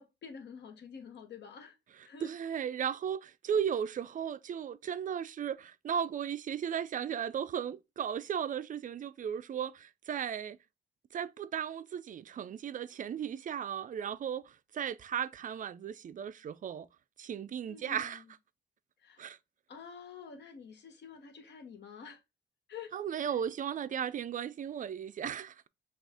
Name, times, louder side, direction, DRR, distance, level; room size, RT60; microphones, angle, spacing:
voice 1, 0.0-1.8 2.0-2.3 17.7-18.2 19.0-19.3 19.7-22.2 22.7-23.4, left 6 dB, 60° left, 1.1 m, -48 dB
voice 2, 2.2-10.6 11.1-16.9 17.2-18.2 19.2-19.4 22.9-25.7, right 8 dB, 40° right, 0.4 m, -36 dB
6.0 x 2.4 x 3.5 m
cardioid pair, 90°, 20 cm